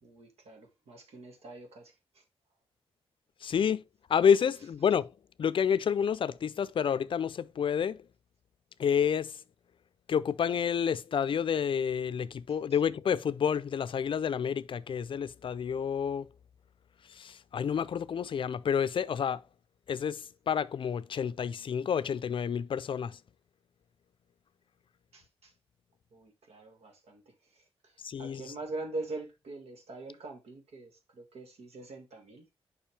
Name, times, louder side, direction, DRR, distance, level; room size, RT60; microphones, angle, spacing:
voice 1, 0.0-2.2 25.1-25.5 26.1-32.5, right 2 dB, 80° right, 1.8 m, -44 dB
voice 2, 3.4-3.8 4.1-5.1 5.4-8.0 8.8-9.4 10.1-16.3 17.1-19.4 19.9-23.2 28.0-28.4, left 7 dB, 55° left, 0.4 m, -29 dB
7.3 x 5.4 x 3.3 m
wide cardioid pair, 110°, 10 cm